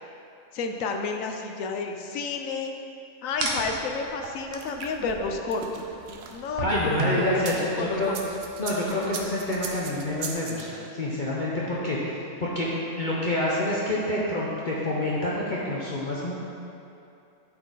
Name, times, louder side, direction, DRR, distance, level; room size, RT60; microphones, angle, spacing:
voice 1, 0.5-2.7 3.2-5.8 6.3-8.1, left 4 dB, 85° left, 4 dB, 1.1 m, -30 dB
sound 1, 3.3-10.3, right 2 dB, 90° right, 1.4 m, -40 dB
sound 2, 4.2-7.6 8.0-10.6, right 3 dB, 60° right, 0.8 m, -35 dB
voice 2, 6.6-8.1 8.6-12.7 13.0-16.3, left 1 dB, 45° left, -6 dB, 0.9 m, -27 dB
10.0 x 4.4 x 3.9 m, 2.7 s
omnidirectional pair, 1.4 m